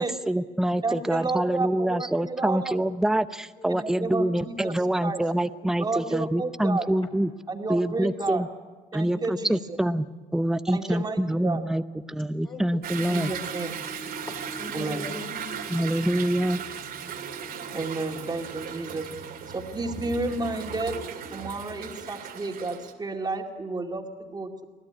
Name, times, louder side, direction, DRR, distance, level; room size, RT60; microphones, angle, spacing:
voice 1, 0.0-7.3 7.7-8.5 8.9-10.1 10.3-11.8 12.1-13.3 15.7-16.6, right 1 dB, 5° right, 12 dB, 0.7 m, -26 dB
voice 2, 0.8-2.8 3.7-4.8 5.0-5.2 5.8-6.9 7.5-8.5 8.9-9.8 10.7-11.6 13.1-13.8 14.7-15.0 17.7-19.1 19.5-21.0 21.3-24.6, right 3 dB, 25° right, 4 dB, 2.4 m, -31 dB
voice 3, 3.6-4.2 12.4-13.2 14.3-15.7, left 2 dB, 30° left, 1 dB, 3.5 m, -41 dB
Toilet flush / Drip / Trickle dribble, 12.8-22.9, right 7 dB, 60° right, 2.5 m, -37 dB
25.0 x 16.0 x 9.7 m, 1.3 s
cardioid pair, 110°, 17 cm